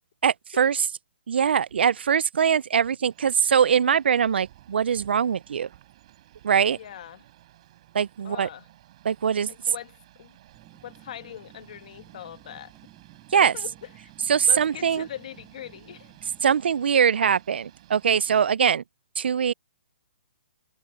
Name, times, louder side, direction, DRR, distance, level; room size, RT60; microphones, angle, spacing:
voice 1, 0.2-0.8 1.3-5.7 6.4-6.8 7.9-8.5 9.0-9.5 13.3-13.5 14.3-15.1 16.4-18.8 19.2-19.5, right 7 dB, 65° right, 0.3 m, -22 dB
sound 1, 3.0-18.5, right 14 dB, 30° right, 5.6 m, -55 dB
voice 2, 6.7-7.2 8.2-8.7 9.5-10.3 10.8-12.7 13.3-14.1 14.4-16.1, left 11 dB, 40° left, 1.5 m, -41 dB
sound 2, 10.5-16.4, right 14 dB, 15° right, 7.1 m, -54 dB
hypercardioid pair, 175°, 6 cm